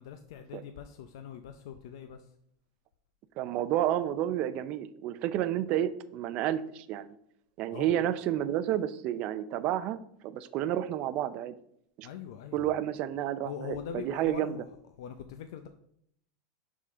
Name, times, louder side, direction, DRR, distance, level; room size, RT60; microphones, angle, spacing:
voice 1, 0.0-2.3 7.7-7.9 12.0-12.8 13.4-14.7 15.0-15.7, left 8 dB, 75° left, 8 dB, 0.5 m, -42 dB
voice 2, 3.4-7.1 7.6-10.0 10.2-11.5 12.0-12.1 12.5-14.6, right 12 dB, 45° right, 13 dB, 0.5 m, -30 dB
11.0 x 3.7 x 3.7 m, 0.71 s
supercardioid pair, 140°, 2 cm